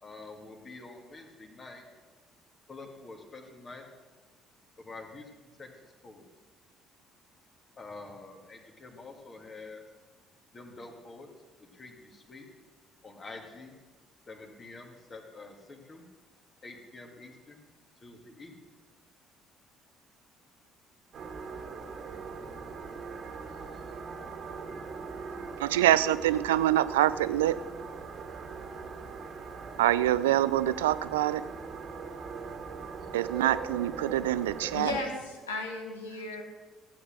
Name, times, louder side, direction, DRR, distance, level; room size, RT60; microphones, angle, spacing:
voice 1, 0.0-1.8 2.7-3.8 4.8-5.3 5.6-5.7 6.0-6.3 7.8-9.8 10.5-11.3 11.7-12.5 13.0-13.7 14.3-16.0 16.6-17.6 18.0-18.6, left 3 dB, 35° left, 2 dB, 2.3 m, -47 dB
sound 1, 21.1-35.0, right 4 dB, 45° right, 1.7 m, -41 dB
voice 2, 25.6-27.6 29.8-31.5 33.1-34.9, right 13 dB, 70° right, 16 dB, 0.3 m, -25 dB
voice 3, 34.7-36.4, left 3 dB, 75° left, 3 dB, 1.6 m, -35 dB
15.0 x 8.7 x 6.4 m, 1.3 s
figure-of-eight pair, 50°, 0 cm